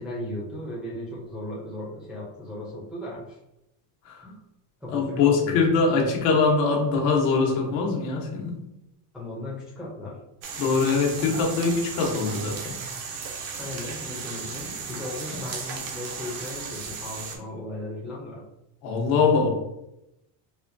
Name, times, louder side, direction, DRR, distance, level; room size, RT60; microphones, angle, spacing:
voice 1, 0.0-3.4 4.2-4.4 4.8-5.6 9.1-10.2 13.6-18.5, left 1 dB, ahead, -6 dB, 0.4 m, -36 dB
voice 2, 4.9-8.6 10.6-12.8 15.3-15.4 18.8-19.5, left 4 dB, 85° left, -1 dB, 1.1 m, -23 dB
sound 1, 10.4-17.4, right 5 dB, 90° right, 0.8 m, -35 dB
4.2 x 2.2 x 2.6 m, 0.88 s
cardioid pair, 165°, 49 cm